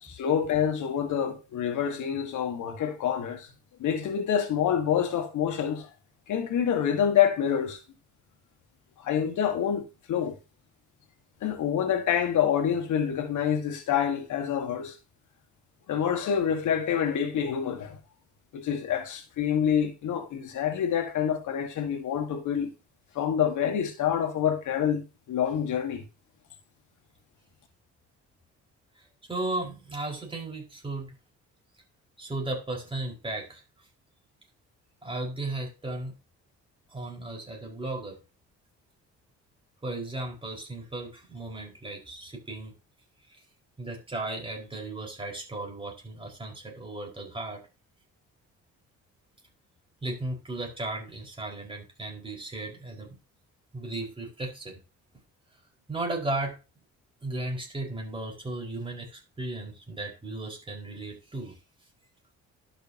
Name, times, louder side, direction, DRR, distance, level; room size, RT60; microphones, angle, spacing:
voice 1, 0.0-3.5 3.8-5.9 6.3-7.8 9.0-9.8 10.1-10.4 11.4-14.9 15.9-18.0 18.5-22.7 23.1-26.0, left 8 dB, 75° left, 1.7 m, -27 dB
voice 2, 29.0-31.1 32.2-33.6 35.0-36.1 36.9-38.2 39.8-42.7 43.8-47.6 50.0-53.1 53.7-54.8 55.9-56.6 57.2-61.6, right 2 dB, 15° right, 5.1 m, -35 dB
12.0 x 6.6 x 2.9 m
cardioid pair, 90°, 30 cm